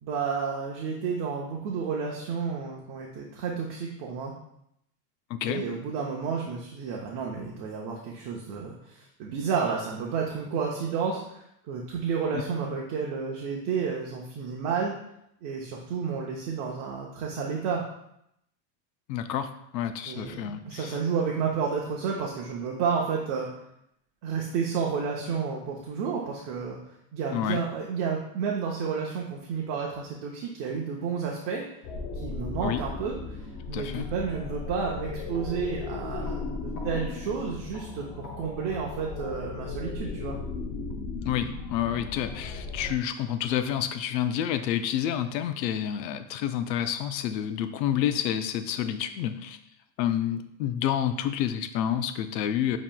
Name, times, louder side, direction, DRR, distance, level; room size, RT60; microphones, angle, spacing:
voice 1, 0.0-4.3 5.4-11.4 11.7-14.9 15.4-17.8 20.1-23.5 24.2-26.8 27.1-31.6 32.1-33.2 33.7-40.4, right 6 dB, 40° right, -2 dB, 0.7 m, -31 dB
voice 2, 5.3-5.6 19.1-19.5 19.7-21.0 27.3-27.6 32.6-32.8 33.7-34.1 41.2-49.6 50.0-52.8, left 10 dB, 85° left, 10 dB, 0.6 m, -29 dB
sound 1, 31.8-42.9, left 3 dB, 35° left, 0.6 m, -36 dB
7.1 x 3.0 x 2.2 m, 0.77 s
supercardioid pair, 145°, 49 cm